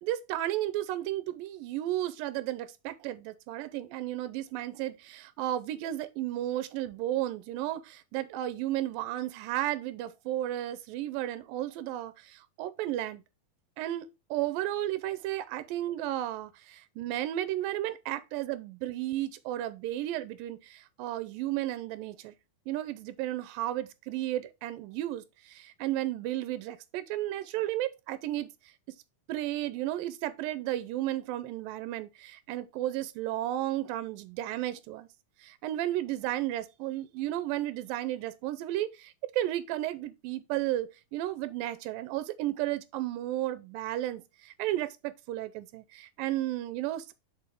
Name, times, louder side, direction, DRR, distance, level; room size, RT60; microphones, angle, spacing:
voice 1, 0.0-13.2 13.8-22.4 22.7-28.7 29.3-35.1 35.4-47.1, right 14 dB, 85° right, 2.3 m, -33 dB
6.9 x 4.7 x 3.6 m
omnidirectional pair, 4.1 m